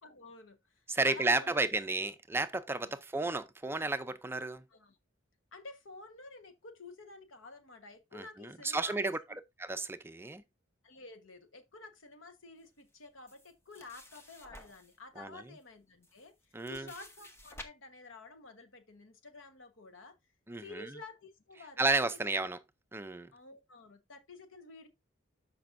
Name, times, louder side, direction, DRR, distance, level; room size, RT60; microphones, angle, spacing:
voice 1, 0.0-1.6 2.9-3.0 4.7-5.0 5.5-9.1 10.8-16.3 16.7-20.1 20.6-22.0 22.3-22.5 23.3-24.9, left 3 dB, 80° left, 1.2 m, -51 dB
voice 2, 0.9-4.6 8.1-9.2 9.6-10.4 15.2-15.4 16.5-16.9 20.5-20.9 21.8-22.6 22.9-23.3, right 3 dB, 10° right, 0.5 m, -32 dB
sound 1, 13.3-15.0 15.6-15.7 16.0-17.6, left 1 dB, 15° left, 0.9 m, -52 dB
13.0 x 5.3 x 2.6 m
head